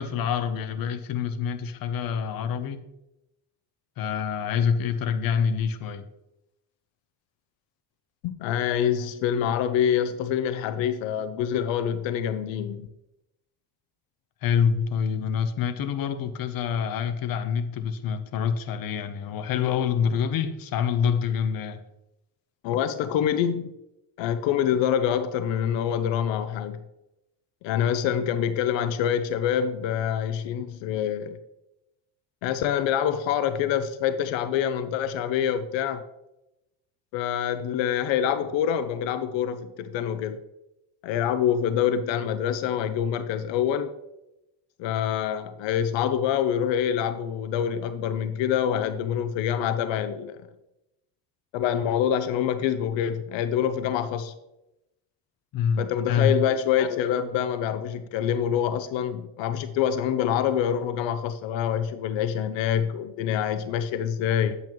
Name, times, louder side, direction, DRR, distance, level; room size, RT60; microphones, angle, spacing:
voice 1, 0.0-2.8 4.0-6.1 14.4-21.8 55.5-56.4, left 7 dB, 50° left, 9 dB, 0.8 m, -26 dB
voice 2, 8.2-12.9 22.6-23.8 24.2-26.8 27.6-31.4 32.4-36.1 37.1-40.4 41.0-43.9 44.8-50.5 51.5-54.3 55.8-64.6, left 9 dB, 80° left, 11 dB, 0.6 m, -26 dB
8.9 x 8.3 x 3.0 m, 0.91 s
cardioid pair, 140°, 44 cm